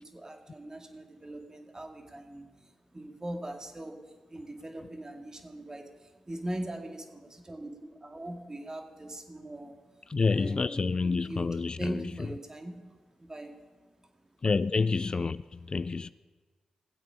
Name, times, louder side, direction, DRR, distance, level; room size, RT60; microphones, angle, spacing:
voice 1, 0.0-10.0 10.3-14.3 16.0-16.1, right 1 dB, 30° right, 2.1 m, -41 dB
voice 2, 10.1-12.3 14.4-16.1, left 4 dB, 45° left, 0.3 m, -28 dB
19.0 x 8.0 x 5.0 m
supercardioid pair, 40°, 2 cm